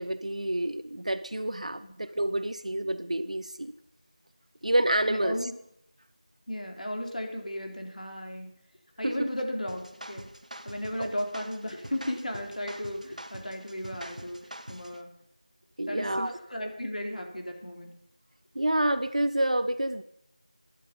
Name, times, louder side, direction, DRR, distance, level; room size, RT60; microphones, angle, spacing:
voice 1, 0.0-3.7 4.6-5.4 9.0-9.1 11.0-11.1 15.8-16.4 18.5-20.0, right 1 dB, 65° right, 12 dB, 0.9 m, -28 dB
voice 2, 5.1-5.5 6.5-8.5 9.0-10.3 10.6-15.1 15.9-17.9, left 1 dB, 85° left, 2 dB, 3.8 m, -35 dB
sound 1, 9.7-15.0, right 1 dB, 85° right, 1.4 m, -45 dB
17.0 x 11.0 x 5.4 m, 0.77 s
figure-of-eight pair, 175°, 4 cm